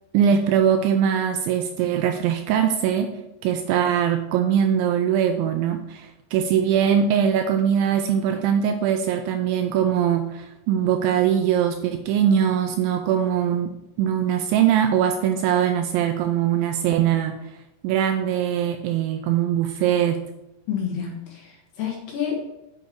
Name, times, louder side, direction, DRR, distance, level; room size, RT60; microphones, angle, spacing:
voice 1, 0.1-3.1 3.4-13.7 14.0-17.3 17.8-20.2, right 9 dB, 85° right, 6 dB, 2.7 m, -21 dB
voice 2, 20.7-22.6, left 7 dB, 65° left, -1 dB, 3.0 m, -29 dB
8.5 x 6.7 x 4.6 m, 0.89 s
omnidirectional pair, 5.8 m